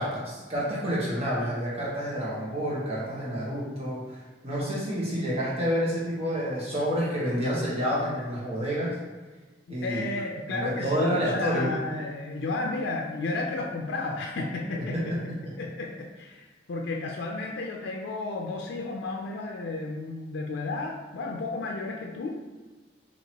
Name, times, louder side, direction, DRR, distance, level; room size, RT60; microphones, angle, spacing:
voice 1, 0.0-4.2 4.4-9.0 9.7-10.0 10.5-11.8 14.9-15.4, equal, 35° right, -6 dB, 1.2 m, -29 dB
voice 2, 9.7-15.2 15.6-22.4, left 2 dB, 80° left, 0 dB, 0.4 m, -32 dB
4.5 x 2.9 x 2.9 m, 1.3 s
head